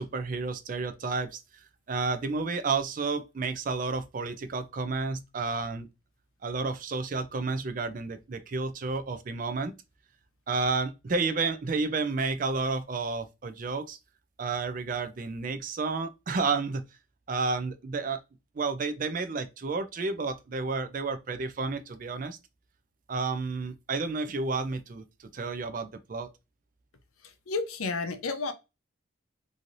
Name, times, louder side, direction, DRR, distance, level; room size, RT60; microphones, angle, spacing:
voice 1, 0.0-1.4 1.9-5.9 6.4-9.7 10.5-14.0 14.4-16.8 17.3-18.2 18.6-22.4 23.1-25.0 25.3-26.3, right 4 dB, 40° right, 0.4 m, -31 dB
voice 2, 27.2-28.5, left 3 dB, 90° left, 0.6 m, -32 dB
3.1 x 2.7 x 2.5 m
head